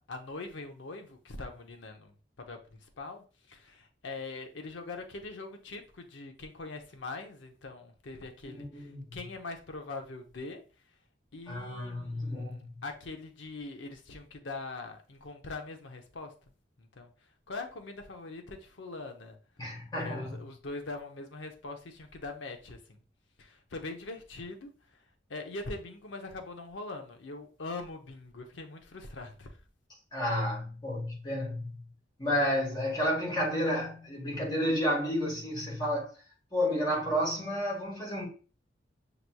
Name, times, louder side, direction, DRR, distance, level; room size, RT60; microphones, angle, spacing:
voice 1, 0.1-2.1 2.5-10.6 11.3-16.3 16.8-17.1 17.5-19.4 19.9-23.0 23.4-24.7 25.3-29.6, left 3 dB, 75° left, 0.7 m, -42 dB
voice 2, 8.4-9.1 11.5-12.7 19.6-20.4 30.1-31.8 32.2-36.1 36.5-38.3, equal, 20° left, 1.6 m, -31 dB
6.6 x 3.0 x 2.2 m
head